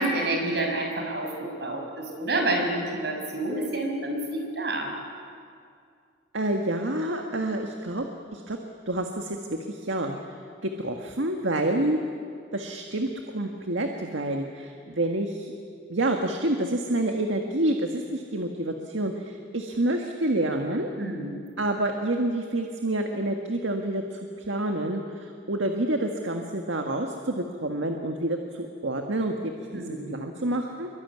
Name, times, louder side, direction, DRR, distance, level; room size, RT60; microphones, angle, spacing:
voice 1, 0.0-4.9 20.9-21.4 29.7-30.2, right 2 dB, 60° right, 2 dB, 6.2 m, -28 dB
voice 2, 6.3-8.1 8.3-8.6 8.9-10.2 10.6-12.0 12.5-15.5 15.9-20.9 21.6-30.9, right 1 dB, 85° right, 3 dB, 1.8 m, -28 dB
25.5 x 24.0 x 9.6 m, 2.3 s
head